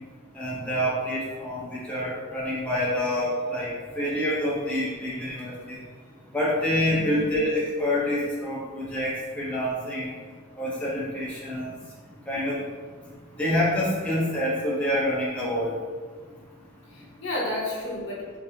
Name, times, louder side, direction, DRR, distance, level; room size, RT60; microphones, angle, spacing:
voice 1, 0.3-3.7 4.0-5.8 6.3-10.1 10.6-11.7 12.3-12.6 13.4-15.7, left 1 dB, 5° left, -7 dB, 0.5 m, -27 dB
voice 2, 6.9-7.3 16.9-18.4, left 1 dB, 65° left, -5 dB, 0.9 m, -32 dB
3.3 x 2.6 x 2.6 m, 1.5 s
head